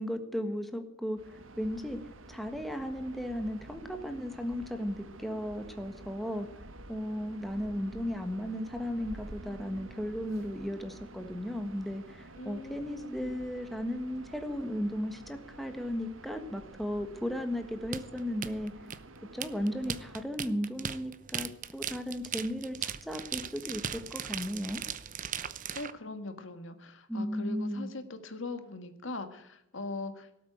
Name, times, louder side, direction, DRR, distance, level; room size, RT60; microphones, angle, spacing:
voice 1, 0.0-2.0 2.3-6.5 6.9-18.7 19.3-24.8 27.1-27.9, equal, ahead, 6 dB, 1.5 m, -35 dB
sound 1, 1.2-20.2, right 2 dB, 75° right, 1.2 m, -50 dB
voice 2, 12.4-13.4 25.7-30.3, left 2 dB, 70° left, 8 dB, 1.8 m, -41 dB
sound 2, 17.9-25.9, right 8 dB, 40° right, 0.8 m, -38 dB
18.5 x 8.4 x 8.0 m, 0.82 s
head